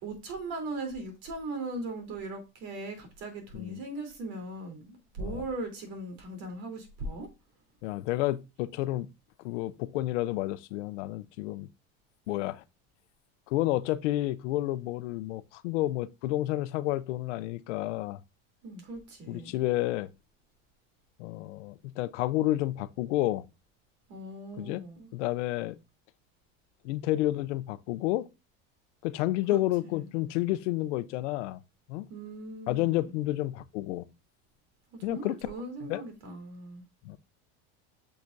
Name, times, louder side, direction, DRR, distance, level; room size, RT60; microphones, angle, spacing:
voice 1, 0.0-7.3 18.6-19.6 24.1-25.1 29.5-30.0 32.1-33.1 35.1-36.8, right 2 dB, 70° right, 3.4 m, -39 dB
voice 2, 7.8-9.1 9.4-11.7 12.3-12.6 13.5-18.2 19.3-20.1 21.2-23.5 24.6-24.8 25.1-25.8 26.8-28.3 29.0-31.6 31.9-32.1 32.7-34.0 35.0-35.4 35.9-36.0 37.0-37.2, left 16 dB, 85° left, 0.7 m, -30 dB
8.6 x 5.9 x 2.6 m
supercardioid pair, 125°, 35 cm